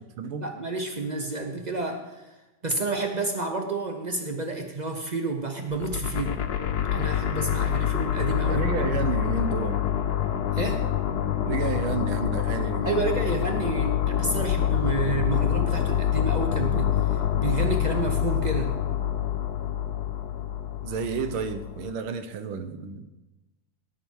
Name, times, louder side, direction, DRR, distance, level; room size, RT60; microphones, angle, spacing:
voice 1, 0.4-2.3 2.6-6.4 6.9-9.0 10.5-10.9 12.8-18.8, right 3 dB, 55° right, 4 dB, 0.4 m, -30 dB
sound 1, 5.7-21.9, left 10 dB, 60° left, 1.1 m, -26 dB
voice 2, 8.5-9.9 11.5-13.2 20.8-23.1, right 6 dB, 85° right, 9 dB, 1.7 m, -31 dB
17.5 x 6.9 x 4.6 m, 1.1 s
omnidirectional pair, 2.2 m